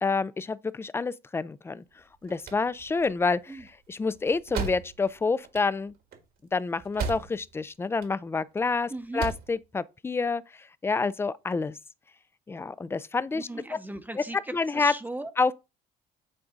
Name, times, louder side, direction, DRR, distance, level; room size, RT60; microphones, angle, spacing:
voice 1, 0.0-1.8 2.2-3.6 3.9-5.9 6.5-11.7 12.5-13.5 14.2-14.3 14.5-14.9 15.4-15.5, left 4 dB, 15° left, 0.3 m, -28 dB
sound 1, 2.0-7.6 7.9-8.6 9.0-9.6, right 5 dB, 70° right, 1.6 m, -37 dB
voice 2, 8.9-9.3 13.3-15.3, right 2 dB, 10° right, 0.7 m, -38 dB
8.6 x 3.9 x 3.8 m
cardioid pair, 110°, 17 cm